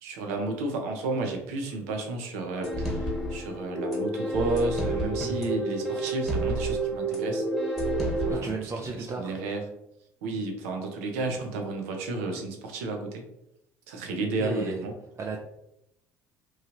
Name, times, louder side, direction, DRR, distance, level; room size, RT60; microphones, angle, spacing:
voice 1, 0.0-7.5 8.2-8.5 9.2-9.6 10.2-13.2 13.9-14.9, right 3 dB, 80° right, 3 dB, 0.6 m, -32 dB
sound 1, 2.6-8.3, right 1 dB, ahead, 1.3 m, -29 dB
voice 2, 8.3-9.3 14.4-14.9 15.2-15.4, right 4 dB, 40° right, 1 dB, 0.4 m, -33 dB
3.0 x 2.3 x 2.9 m, 0.79 s
hypercardioid pair, 70°, 8 cm